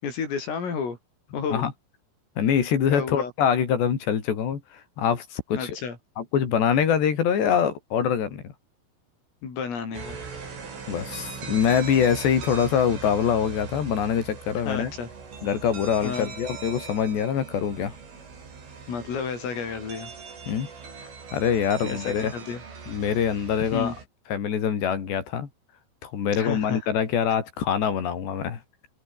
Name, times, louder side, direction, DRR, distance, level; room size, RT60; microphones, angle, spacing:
voice 1, 0.0-1.0 1.3-1.7 2.9-3.3 5.6-6.0 9.4-10.5 14.7-15.1 16.0-16.3 18.9-20.1 21.8-22.6 23.7-24.0 26.4-26.8, left 6 dB, 90° left, 9.1 m, -31 dB
voice 2, 2.4-5.8 6.2-8.5 10.9-14.9 15.4-18.0 20.5-20.7 21.3-22.3 22.9-23.9 24.3-25.5 26.0-28.6, left 8 dB, 60° left, 5.5 m, -24 dB
sound 1, 9.9-24.1, right 5 dB, 75° right, 9.9 m, -40 dB
omnidirectional pair, 5.7 m